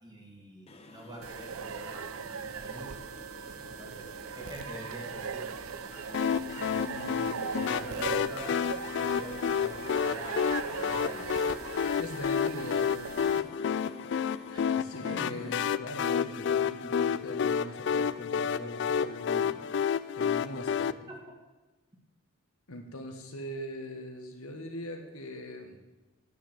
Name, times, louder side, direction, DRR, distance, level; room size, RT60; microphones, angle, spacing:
voice 1, 0.0-3.0 3.7-5.5 7.7-8.6 8.9-11.3 14.5-14.7 15.0-15.3 21.1-21.2, right 1 dB, 20° right, 0 dB, 2.0 m, -45 dB
sound 1, 0.7-15.7, left 2 dB, 25° left, 0.8 m, -52 dB
sound 2, 1.2-13.4, right 6 dB, 75° right, 0.6 m, -39 dB
sound 3, 6.1-20.9, left 7 dB, 55° left, 0.3 m, -30 dB
voice 2, 6.6-7.9 12.0-13.5 14.7-19.6 20.1-21.1 22.7-25.8, left 1 dB, 80° left, 4 dB, 1.5 m, -41 dB
9.3 x 6.5 x 7.5 m, 1.1 s
head